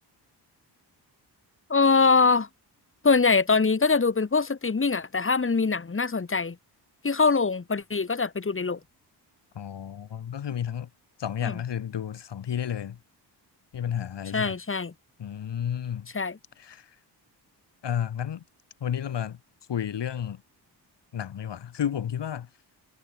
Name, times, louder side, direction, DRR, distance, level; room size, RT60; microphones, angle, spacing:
voice 1, 1.7-2.5 3.0-6.5 7.0-8.8 11.4-11.6 14.3-14.9 16.1-16.4, left 4 dB, 30° left, 3.0 m, -23 dB
voice 2, 9.6-10.9 11.2-13.0 13.7-14.6 15.2-16.1 16.6-16.9 17.8-18.4 18.8-19.4 19.7-20.4 21.1-22.5, left 9 dB, 75° left, 7.1 m, -31 dB
cardioid pair, 95°, 43 cm